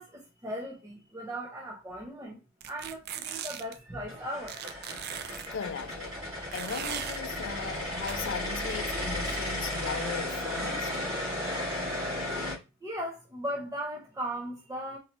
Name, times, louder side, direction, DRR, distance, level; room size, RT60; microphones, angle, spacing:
voice 1, 0.0-2.4 2.7-4.6 12.8-15.0, equal, 15° right, 0.6 m, -37 dB
sound 1, 2.6-3.8 4.5-5.5 6.5-7.2 8.1-8.2, right 9 dB, 50° right, 0.3 m, -38 dB
sound 2, 3.9-12.6, left 1 dB, 70° right, 2.3 m, -34 dB
voice 2, 5.5-6.2 6.5-10.9, left 6 dB, 60° left, 0.4 m, -37 dB
4.4 x 2.7 x 2.9 m
head